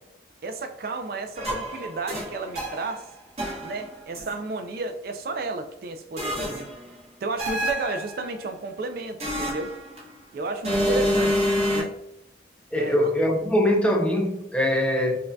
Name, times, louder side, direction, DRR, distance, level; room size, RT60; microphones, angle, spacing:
voice 1, 0.4-3.1 3.6-6.7 7.2-9.7 10.3-11.4 11.7-11.9 12.7-13.0, right 3 dB, 55° right, 6 dB, 0.3 m, -32 dB
sound 1, 1.3-3.0 3.4-4.3 6.2-6.8 7.4-8.2 9.2-10.1 10.6-11.8, equal, 35° right, 1.2 m, -27 dB
voice 2, 12.7-15.2, left 1 dB, 5° left, 1 dB, 0.4 m, -22 dB
5.3 x 2.6 x 2.2 m, 0.86 s
head